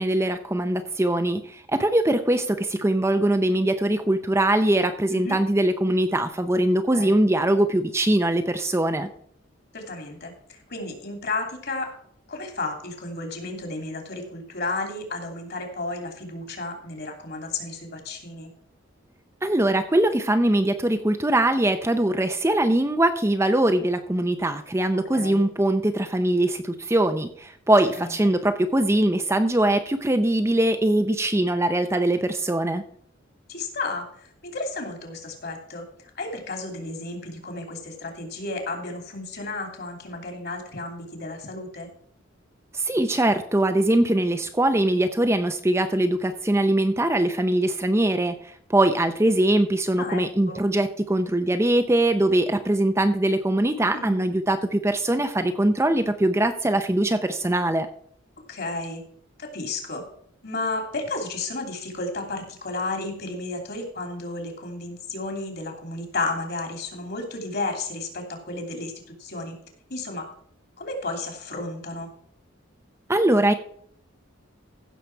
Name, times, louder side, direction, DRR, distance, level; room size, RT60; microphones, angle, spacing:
voice 1, 0.0-9.1 19.4-32.8 42.7-57.9 73.1-73.5, right 1 dB, 15° right, 8 dB, 0.6 m, -22 dB
voice 2, 9.7-11.9 12.3-18.5 25.1-25.4 27.9-28.1 33.5-41.9 50.0-50.6 53.9-54.2 58.5-59.0 59.4-60.0 60.4-68.9 69.2-69.5 69.9-70.3 70.8-72.1, left 2 dB, 50° left, 3 dB, 2.8 m, -33 dB
15.5 x 6.7 x 4.6 m, 0.63 s
head